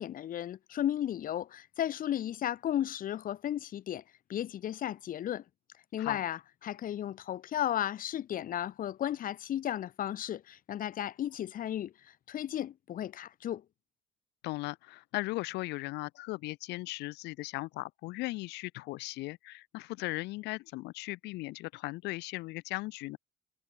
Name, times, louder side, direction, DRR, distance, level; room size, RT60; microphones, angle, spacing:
voice 1, 0.0-4.0 4.3-5.4 5.9-11.9 12.3-13.6, left 11 dB, 55° left, 1.3 m, -34 dB
voice 2, 14.4-23.2, left 20 dB, 85° left, 0.9 m, -37 dB
cardioid pair, 110°, 17 cm